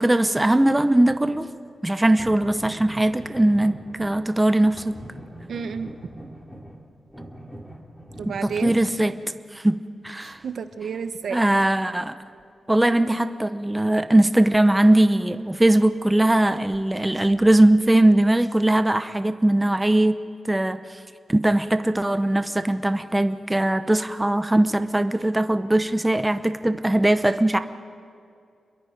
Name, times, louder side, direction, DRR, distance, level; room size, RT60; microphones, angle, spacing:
voice 1, 0.0-1.5 1.8-5.0 8.4-9.1 9.5-10.4 11.3-12.2 12.7-20.2 20.5-21.0 21.3-27.6, right 1 dB, 10° right, 10 dB, 0.7 m, -20 dB
sound 1, 0.6-1.4 2.2-4.3 4.6-8.9 15.1-15.2 15.6-15.7 16.1-16.2 16.6-16.8 17.2-18.2, right 1 dB, 5° left, 2.6 m, -42 dB
voice 2, 5.5-5.9 8.2-8.8 10.2-11.4, right 6 dB, 70° right, 9 dB, 1.1 m, -31 dB
27.5 x 22.5 x 5.2 m, 2.4 s
wide cardioid pair, 110°, 0 cm